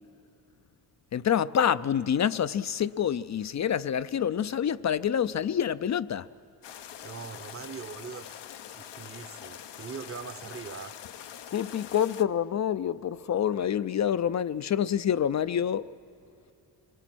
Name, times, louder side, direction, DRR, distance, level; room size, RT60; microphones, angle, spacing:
voice 1, 1.1-6.3 11.5-15.9, left 9 dB, 45° left, 0.5 m, -27 dB
sound 1, 6.6-12.2, left 10 dB, 80° left, 0.7 m, -44 dB
voice 2, 7.0-8.4 8.7-11.0, right 6 dB, 35° right, 0.8 m, -41 dB
26.0 x 20.5 x 6.1 m
cardioid pair, 60°, 42 cm